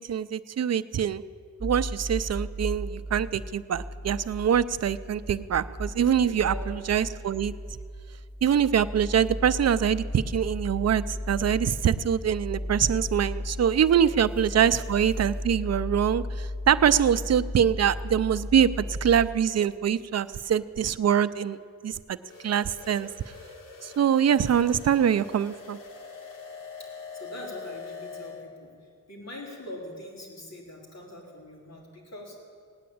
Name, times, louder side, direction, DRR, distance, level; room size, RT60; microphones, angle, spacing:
voice 1, 0.1-1.2 1.6-7.5 8.4-21.6 21.8-22.2 22.4-23.1 23.8-25.8, right 8 dB, 55° right, 14 dB, 0.5 m, -24 dB
sound 1, 1.6-19.3, left 1 dB, 5° right, 5.5 m, -35 dB
voice 2, 6.2-6.6 14.0-14.2 14.5-14.7 26.8-32.4, left 1 dB, 55° left, -1 dB, 4.1 m, -43 dB
sound 2, 22.2-28.5, left 5 dB, 80° left, 1.8 m, -43 dB
17.5 x 9.6 x 8.5 m, 2.1 s
wide cardioid pair, 85°, 32 cm